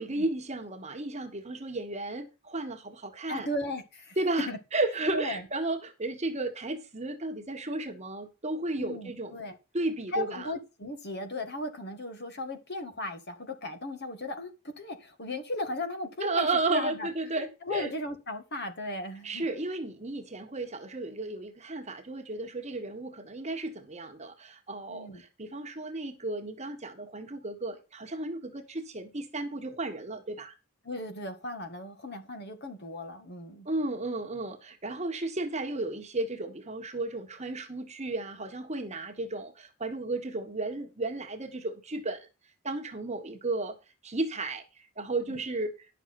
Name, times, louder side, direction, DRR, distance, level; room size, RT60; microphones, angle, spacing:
voice 1, 0.0-3.5 4.2-9.4 9.7-10.5 16.2-17.9 19.2-30.5 33.6-42.3 42.6-43.7 44.0-44.6 45.0-45.7, right 2 dB, 30° right, 1.5 m, -33 dB
voice 2, 3.3-4.2 4.5-4.6 5.1-5.5 8.8-9.6 10.1-14.5 14.8-17.1 17.3-19.5 24.9-25.2 30.8-33.7 45.3-45.4, left 1 dB, 50° left, 1.9 m, -36 dB
11.0 x 6.6 x 5.9 m
head